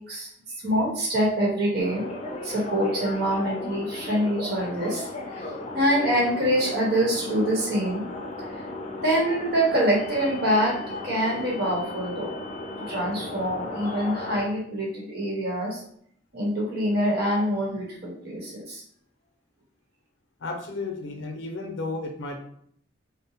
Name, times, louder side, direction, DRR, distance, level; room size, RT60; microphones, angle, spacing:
voice 1, 0.1-2.1 2.4-5.1 5.3-8.0 8.5-8.6 9.0-10.7 11.0-12.3 12.8-15.8 16.3-18.8, equal, 55° right, -4 dB, 1.0 m, -25 dB
sound 1, 1.8-14.4, left 2 dB, 35° left, 0.5 m, -35 dB
voice 2, 20.4-22.4, left 3 dB, 80° left, 2 dB, 0.6 m, -33 dB
3.8 x 2.1 x 2.8 m, 0.65 s
head